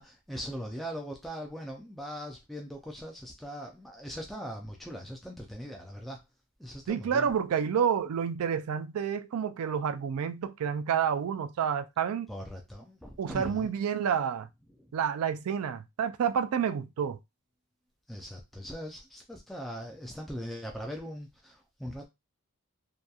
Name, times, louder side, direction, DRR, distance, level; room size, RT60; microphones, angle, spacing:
voice 1, 0.0-6.2 6.6-7.3 12.3-13.7 18.1-22.1, equal, ahead, 0.3 m, -40 dB
voice 2, 6.9-12.3 13.2-14.5 14.9-17.2, right 7 dB, 75° right, 0.3 m, -29 dB
2.8 x 2.2 x 2.3 m
head